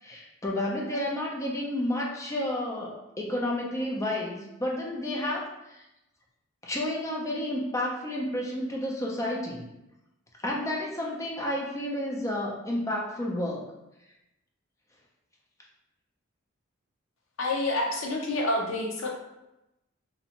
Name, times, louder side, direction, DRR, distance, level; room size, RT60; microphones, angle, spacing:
voice 1, 0.0-5.8 6.6-9.6 10.4-13.6, left 1 dB, 15° left, -2 dB, 0.4 m, -31 dB
voice 2, 17.4-19.1, left 2 dB, 75° left, 1 dB, 0.5 m, -28 dB
2.5 x 2.1 x 2.8 m, 0.93 s
head